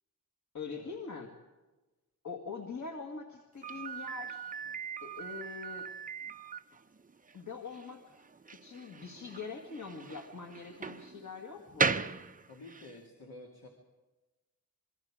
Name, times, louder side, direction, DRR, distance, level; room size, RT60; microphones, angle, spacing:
voice 1, 0.5-1.3 2.2-4.4 5.0-5.9 7.3-8.3 8.6-12.0, left 4 dB, 50° left, 1 dB, 2.0 m, -43 dB
Slam, 3.6-13.0, right 4 dB, 25° right, 0.6 m, -38 dB
voice 2, 12.4-13.7, left 2 dB, 75° left, 0 dB, 2.8 m, -50 dB
26.0 x 22.5 x 5.0 m, 1.2 s
wide cardioid pair, 135°, 37 cm